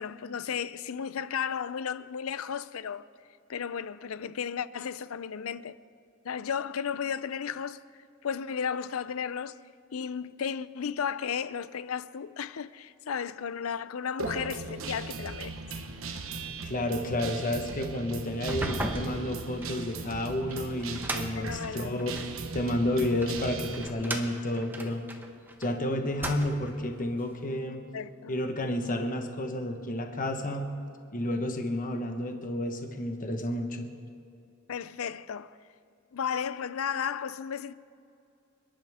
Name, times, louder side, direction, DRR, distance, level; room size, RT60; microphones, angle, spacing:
voice 1, 0.0-3.0 3.5-5.8 6.2-7.8 8.2-9.6 9.9-15.5 21.4-22.0 27.9-28.4 34.7-35.6 36.1-37.7, left 7 dB, 75° left, 0.5 m, -34 dB
Guitar, 14.2-23.9, right 3 dB, 70° right, 1.2 m, -38 dB
voice 2, 16.6-22.1 22.5-25.0 25.6-27.8 28.3-30.7 31.1-33.9, left 1 dB, 40° left, 1.2 m, -31 dB
sound 1, 18.3-22.4 23.0-25.7 26.0-26.8, right 1 dB, 10° right, 1.0 m, -37 dB
28.5 x 11.0 x 3.6 m
head